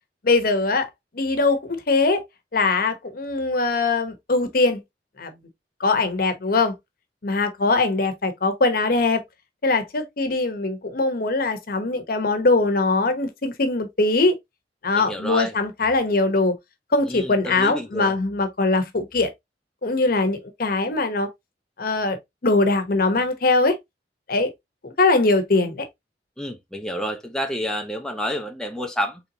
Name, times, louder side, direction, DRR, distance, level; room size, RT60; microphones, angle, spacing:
voice 1, 0.2-0.9 1.2-2.2 2.5-4.8 5.2-5.3 5.8-6.7 7.2-9.2 9.6-14.3 14.8-16.5 16.9-19.3 19.8-21.3 21.8-22.2 22.4-23.8 24.3-24.5 24.8-25.8, left 3 dB, 55° left, 0.8 m, -21 dB
voice 2, 14.9-15.5 17.1-18.1 26.4-29.2, equal, 5° left, 0.5 m, -29 dB
4.1 x 3.4 x 2.7 m
head